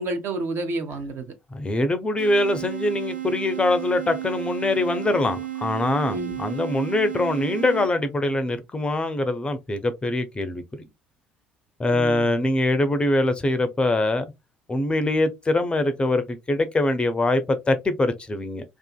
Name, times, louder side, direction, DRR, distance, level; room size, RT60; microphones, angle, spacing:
voice 1, 0.0-1.3 6.1-6.4 11.9-12.3 15.0-15.1, right 2 dB, 45° right, 0.6 m, -30 dB
voice 2, 1.5-10.8 11.8-14.3 14.7-18.6, left 2 dB, 20° left, 0.5 m, -23 dB
sound 1, 2.2-8.2, right 13 dB, 90° right, 0.4 m, -33 dB
2.5 x 2.4 x 2.3 m
figure-of-eight pair, 60°, 5 cm